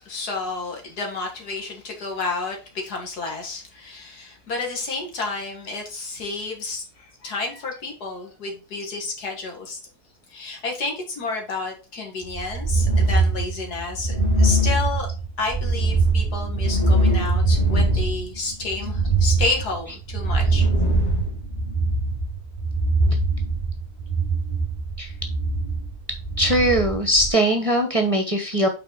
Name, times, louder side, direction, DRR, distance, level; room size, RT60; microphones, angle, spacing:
voice 1, 0.0-9.8 10.3-15.1 15.4-20.7, left 3 dB, 85° left, 1 dB, 2.4 m, -30 dB
sound 1, 12.3-27.3, right 2 dB, 25° left, 1.8 m, -22 dB
voice 2, 26.4-28.7, right 1 dB, 25° right, 4 dB, 0.9 m, -20 dB
5.8 x 4.3 x 4.6 m, 0.33 s
omnidirectional pair, 1.6 m